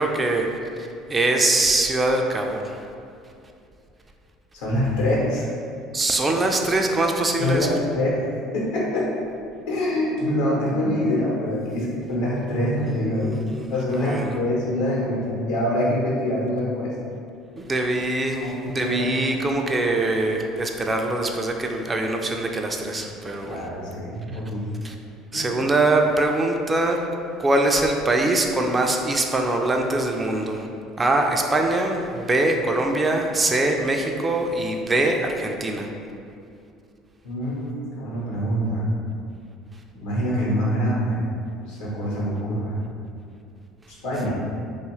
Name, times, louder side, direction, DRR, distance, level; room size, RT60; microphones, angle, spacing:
voice 1, 0.0-2.8 5.9-7.7 12.1-12.2 12.8-13.7 14.0-14.4 17.6-23.7 24.8-24.9 25.3-27.0 27.4-30.7 31.0-35.9, right 2 dB, 25° right, 2 dB, 0.3 m, -23 dB
voice 2, 4.5-5.5 7.4-8.2 8.5-9.1 9.7-13.4 13.7-16.9 18.3-19.1 23.4-24.6 25.3-25.6 37.2-38.9 39.9-41.2 41.6-42.8 44.0-44.3, left 1 dB, 75° left, -6 dB, 0.9 m, -25 dB
2.5 x 2.3 x 3.1 m, 2.4 s
hypercardioid pair, 65°, 0 cm